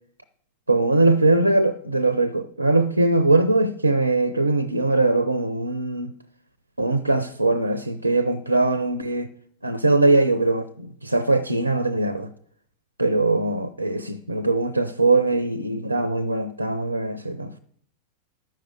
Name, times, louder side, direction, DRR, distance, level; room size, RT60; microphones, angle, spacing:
voice 1, 0.7-6.1 6.8-9.3 9.6-12.3 13.0-17.6, right 2 dB, 85° right, 0.6 m, -21 dB
10.5 x 6.6 x 8.3 m
figure-of-eight pair, 90°, 0 cm